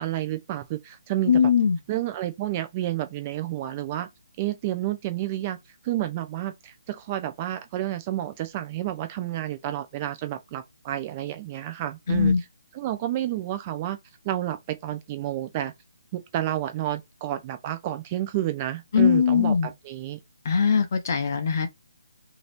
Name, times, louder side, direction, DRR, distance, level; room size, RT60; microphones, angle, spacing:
voice 1, 0.0-1.4 1.9-4.1 4.4-5.6 5.8-12.3 12.7-14.0 14.2-15.7 16.1-20.2, right 13 dB, 25° right, 0.5 m, -30 dB
voice 2, 1.3-1.8 12.1-12.4 18.9-19.7 20.4-21.7, left 6 dB, 45° left, 0.8 m, -21 dB
3.1 x 2.9 x 4.2 m
hypercardioid pair, 160°, 2 cm